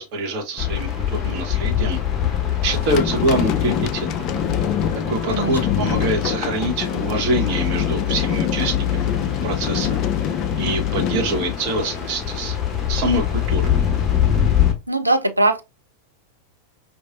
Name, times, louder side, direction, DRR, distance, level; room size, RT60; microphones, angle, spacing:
voice 1, 0.0-2.0 2.6-4.3 5.1-9.1 9.4-10.0 10.6-12.6 12.9-13.7, right 1 dB, 45° right, 1.0 m, -25 dB
sound 1, 0.6-14.7, left 9 dB, 20° left, 1.0 m, -25 dB
sound 2, 2.7-12.1, left 9 dB, 40° left, 0.3 m, -24 dB
voice 2, 14.9-15.6, right 2 dB, 85° right, 0.4 m, -20 dB
4.8 x 2.5 x 2.4 m
figure-of-eight pair, 90°, 0 cm